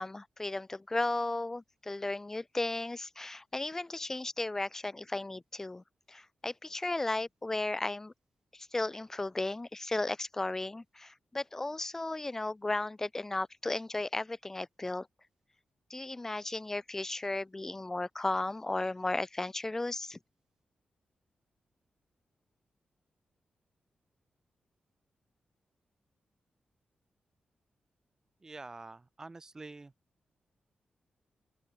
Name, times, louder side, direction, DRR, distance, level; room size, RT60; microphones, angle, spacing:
voice 1, 0.0-5.8 6.1-8.1 8.5-15.1 15.9-20.2, left 2 dB, 15° left, 0.4 m, -35 dB
voice 2, 28.4-29.9, right 3 dB, 20° right, 2.7 m, -47 dB
open air
wide cardioid pair, 165°, 3 cm